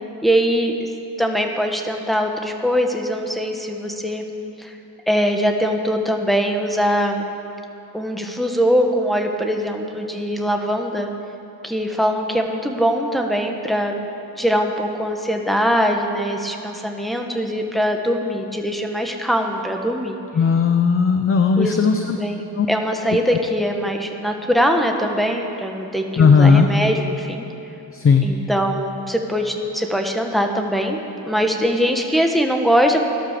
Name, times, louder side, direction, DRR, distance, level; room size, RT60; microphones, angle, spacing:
voice 1, 0.2-0.9 1.2-4.2 4.6-4.8 5.1-7.2 7.9-11.1 11.6-14.0 14.4-20.2 21.6-21.8 22.0-22.4 22.7-27.4 28.2-33.0, equal, ahead, 3 dB, 1.5 m, -22 dB
voice 2, 20.3-22.2 22.6-22.7 26.2-26.7 27.9-28.3, left 5 dB, 35° left, 6 dB, 0.8 m, -15 dB
17.0 x 12.0 x 6.9 m, 3.0 s
cardioid pair, 120°, 38 cm